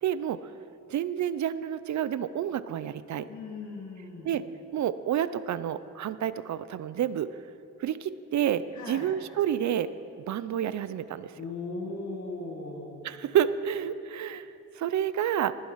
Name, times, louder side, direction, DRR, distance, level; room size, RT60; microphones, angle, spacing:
voice 1, 0.0-0.4 0.9-3.3 4.2-4.4 4.7-7.3 7.8-9.9 10.2-11.3 13.0-14.5 14.8-15.5, right 10 dB, 65° right, 15 dB, 0.5 m, -29 dB
voice 2, 3.3-4.4 8.7-9.1 11.3-13.0, left 3 dB, 65° left, -3 dB, 1.9 m, -38 dB
19.5 x 7.7 x 5.6 m, 2.7 s
wide cardioid pair, 160°, 31 cm